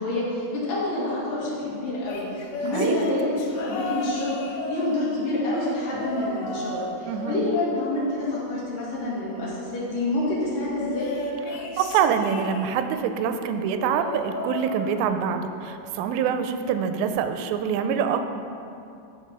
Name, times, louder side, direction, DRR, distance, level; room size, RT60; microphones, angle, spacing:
voice 1, 0.0-2.3 2.6-11.1, left 2 dB, 55° left, -7 dB, 3.4 m, -27 dB
sound 1, 2.0-5.4 5.9-6.9 7.2-8.7 10.8-13.0 13.8-15.3 15.7-16.0 17.2-17.3, left 1 dB, 85° left, 3.4 m, -34 dB
voice 2, 7.0-7.4 11.5-18.2, right 7 dB, 85° right, 8 dB, 2.7 m, -25 dB
14.0 x 5.8 x 5.4 m, 2.6 s
omnidirectional pair, 5.0 m